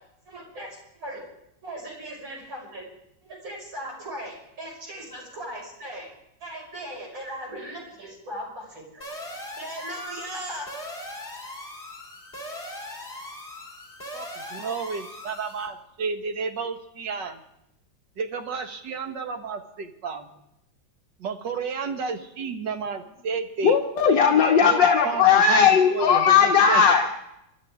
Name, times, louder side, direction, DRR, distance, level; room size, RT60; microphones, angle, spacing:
voice 1, 0.3-1.2 1.6-2.9 3.2-6.1 6.4-9.1 9.6-10.7, right 1 dB, 90° right, 6.4 m, -38 dB
sound 1, 9.0-15.7, left 1 dB, 35° left, 3.7 m, -39 dB
voice 2, 14.1-17.4 18.2-20.3 21.2-23.8 24.6-26.8, right 5 dB, 70° right, 2.0 m, -32 dB
voice 3, 23.6-27.1, left 6 dB, 70° left, 1.8 m, -18 dB
27.0 x 12.5 x 3.6 m
omnidirectional pair, 2.1 m